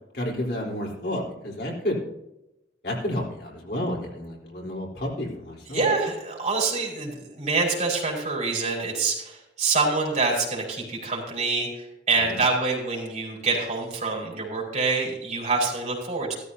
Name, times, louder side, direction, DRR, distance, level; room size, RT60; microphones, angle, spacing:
voice 1, 0.1-2.0 2.8-5.9 12.2-12.4, left 1 dB, 65° left, -2 dB, 3.6 m, -30 dB
voice 2, 5.7-16.3, right 3 dB, 40° right, -2 dB, 5.3 m, -26 dB
15.0 x 13.5 x 2.7 m, 0.90 s
head